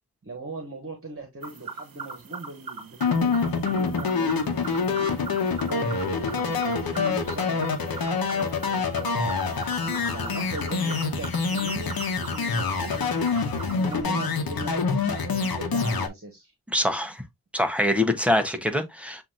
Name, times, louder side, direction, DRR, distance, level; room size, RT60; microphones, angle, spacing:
voice 1, 0.2-5.3 5.6-9.4 9.8-14.7 15.1-16.5, right 2 dB, 35° right, 1.4 m, -39 dB
sound 1, 1.4-14.0, right 5 dB, 65° right, 1.0 m, -41 dB
sound 2, 3.0-16.1, left 4 dB, 70° left, 1.0 m, -26 dB
voice 2, 16.7-17.2 17.5-19.2, left 1 dB, 5° right, 0.9 m, -24 dB
7.3 x 2.8 x 2.5 m
wide cardioid pair, 80°, 37 cm